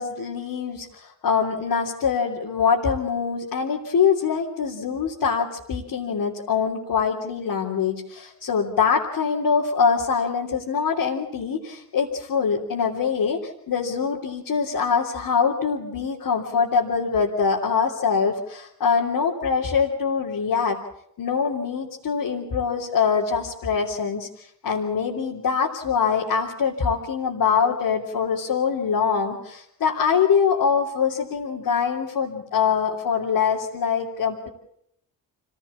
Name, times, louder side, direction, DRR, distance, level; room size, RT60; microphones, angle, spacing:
voice 1, 0.0-20.8 21.2-34.5, left 6 dB, 60° left, -3 dB, 3.3 m, -24 dB
25.5 x 16.5 x 8.5 m, 0.73 s
hypercardioid pair, 50°, 40 cm